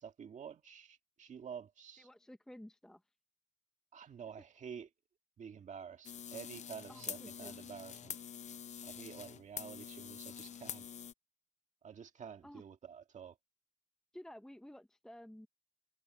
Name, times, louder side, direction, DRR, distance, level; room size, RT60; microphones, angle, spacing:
voice 1, 0.0-2.1 3.9-4.9 5.4-8.2 8.8-10.9 11.8-13.4, right 7 dB, 75° right, 1.9 m, -49 dB
voice 2, 1.9-3.0 6.9-7.6 12.4-12.6 14.1-15.5, left 1 dB, 5° left, 0.7 m, -53 dB
sound 1, 6.0-11.1, left 8 dB, 70° left, 0.5 m, -46 dB
wide cardioid pair, 110°, 12 cm